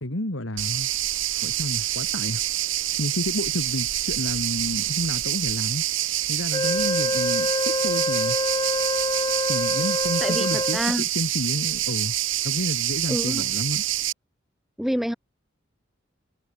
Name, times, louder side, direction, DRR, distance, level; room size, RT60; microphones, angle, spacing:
voice 1, 0.0-0.9 1.4-2.4 3.0-5.8 6.3-8.4 9.5-12.1 12.4-13.8, left 1 dB, 80° left, 2.8 m, -30 dB
sound 1, 0.6-14.1, right 14 dB, 80° right, 2.1 m, -26 dB
Wind instrument woodwind instrument, 6.5-10.9, left 2 dB, 20° left, 1.4 m, -26 dB
voice 2, 10.2-11.0 13.1-13.4 14.8-15.1, equal, ahead, 0.5 m, -27 dB
head